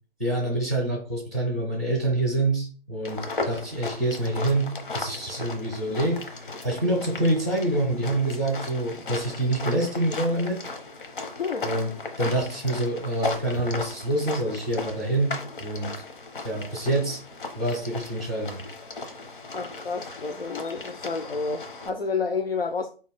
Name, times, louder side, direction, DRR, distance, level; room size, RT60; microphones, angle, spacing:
voice 1, 0.2-10.6 11.6-15.9 16.4-17.2 17.6-18.6, right 1 dB, 10° left, 0.4 m, -26 dB
sound 1, 3.0-21.9, left 3 dB, 60° left, 1.0 m, -37 dB
voice 2, 19.5-22.9, left 4 dB, 75° left, 0.6 m, -30 dB
4.3 x 3.1 x 3.5 m
figure-of-eight pair, 135°, 29 cm